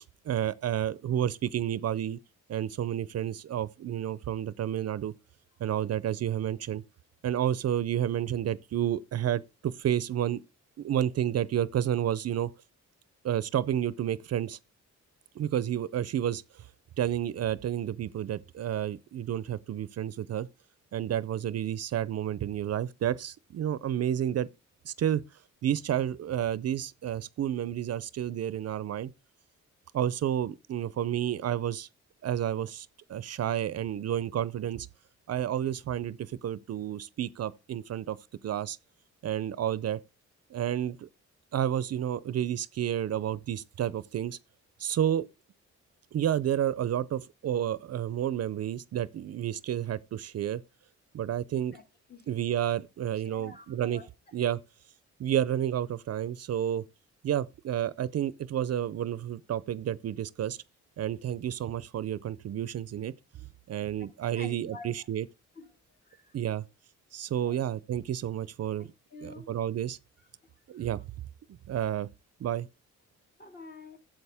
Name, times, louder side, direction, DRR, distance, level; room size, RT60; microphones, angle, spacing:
voice 1, 0.0-2.2 2.5-5.1 5.6-6.8 7.2-10.4 10.8-12.5 13.2-14.6 15.4-16.4 17.0-20.5 20.9-24.5 24.8-25.2 25.6-29.1 29.9-31.9 32.2-34.9 35.3-38.2 38.4-38.8 39.2-40.0 40.5-41.1 41.5-44.4 44.8-45.2 46.1-50.6 51.1-51.8 52.3-54.0 54.3-54.6 55.2-56.8 57.2-60.6 61.0-63.1 63.7-65.3 66.3-66.6 67.1-68.9 69.2-70.0 70.7-71.0 71.7-72.1 72.4-72.7, right 10 dB, 60° right, 0.5 m, -30 dB
voice 2, 53.2-54.1 64.3-65.1 65.6-65.7 66.1-66.4 67.4-67.6 68.8-69.6 70.8-70.9 73.4-74.0, left 2 dB, 35° left, 2.0 m, -48 dB
12.5 x 7.8 x 3.5 m
cardioid pair, 130°, 29 cm